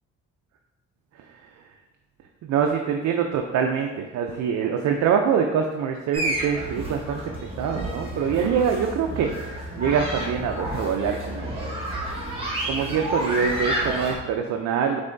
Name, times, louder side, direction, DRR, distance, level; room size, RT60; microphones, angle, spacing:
voice 1, 1.1-1.8 2.4-11.7 12.7-15.0, right 7 dB, 65° right, 3 dB, 0.5 m, -25 dB
sound 1, 6.1-14.2, right 1 dB, 20° right, 1.4 m, -30 dB
5.5 x 3.3 x 2.6 m, 1.1 s
cardioid pair, 90°, 30 cm